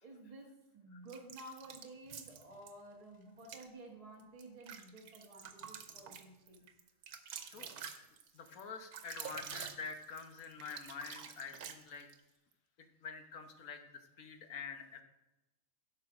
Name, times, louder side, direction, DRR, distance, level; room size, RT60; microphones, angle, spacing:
voice 1, 0.0-6.6, right 2 dB, 25° right, -1 dB, 1.4 m, -53 dB
sound 1, 1.1-2.7 3.4-3.7 4.2-12.2, right 7 dB, 90° right, 1.4 m, -48 dB
voice 2, 8.3-12.1 13.0-13.8 14.2-15.0, left 5 dB, 70° left, 6 dB, 1.5 m, -46 dB
12.5 x 5.8 x 4.9 m, 0.98 s
omnidirectional pair, 1.5 m